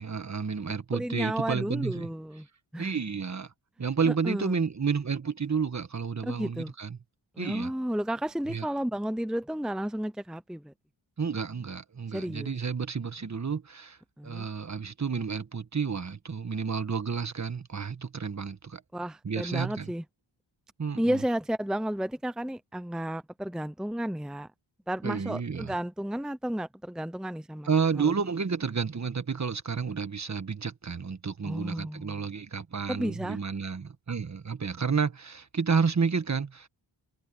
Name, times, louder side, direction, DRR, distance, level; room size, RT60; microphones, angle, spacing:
voice 1, 0.0-2.1 2.8-3.5 3.8-7.0 7.4-7.7 8.5-8.6 11.2-14.0 14.2-18.8 19.2-19.9 20.8-21.2 25.0-25.7 27.7-36.7, right 5 dB, 35° right, 1.5 m, -30 dB
voice 2, 0.9-2.5 2.7-3.0 4.0-4.6 6.2-6.7 7.3-10.7 12.1-12.5 14.2-14.5 18.9-20.0 21.0-24.5 24.9-28.1 31.4-32.3 32.9-33.4, equal, ahead, 0.8 m, -32 dB
cardioid pair, 75°, 47 cm